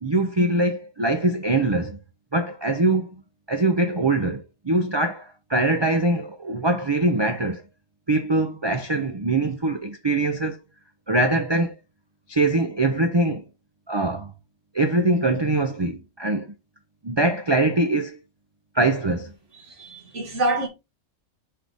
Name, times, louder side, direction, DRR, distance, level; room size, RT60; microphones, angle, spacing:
voice 1, 0.0-2.0 2.3-3.2 3.5-7.6 8.1-10.6 11.1-11.8 12.3-13.5 13.9-14.3 14.7-16.5 17.0-18.2 18.7-19.3, right 2 dB, 35° right, 0.4 m, -23 dB
voice 2, 19.7-20.7, right 2 dB, 55° right, 2.2 m, -26 dB
5.7 x 4.8 x 3.9 m
omnidirectional pair, 1.5 m